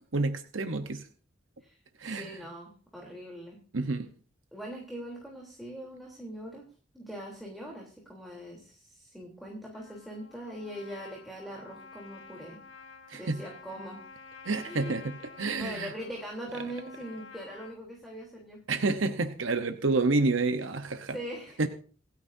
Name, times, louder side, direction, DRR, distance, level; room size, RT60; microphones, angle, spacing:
voice 1, 0.1-1.1 2.0-2.4 3.7-4.1 13.1-13.4 14.4-15.9 18.7-21.2 21.6-21.7, right 3 dB, 85° right, 8 dB, 1.0 m, -29 dB
voice 2, 1.6-3.6 4.5-6.7 6.9-12.6 13.1-14.0 14.6-15.0 15.6-18.6 21.1-21.6, equal, ahead, -3 dB, 3.4 m, -42 dB
Trumpet, 9.7-17.8, left 4 dB, 70° left, 2.2 m, -50 dB
27.0 x 9.4 x 2.7 m, 0.41 s
head